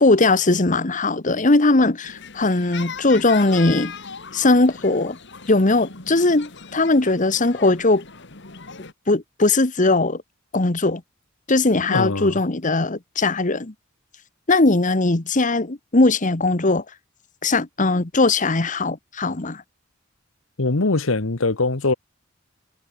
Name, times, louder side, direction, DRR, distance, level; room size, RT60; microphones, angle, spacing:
voice 1, 0.0-3.9 4.3-5.2 5.5-8.0 9.1-10.2 10.5-11.0 11.5-13.7 14.5-16.8 17.4-19.6, left 2 dB, 40° left, 1.3 m, -19 dB
sound 1, 2.0-8.9, left 5 dB, 60° left, 2.6 m, -39 dB
voice 2, 11.9-12.4 20.6-21.9, left 3 dB, 80° left, 1.3 m, -22 dB
head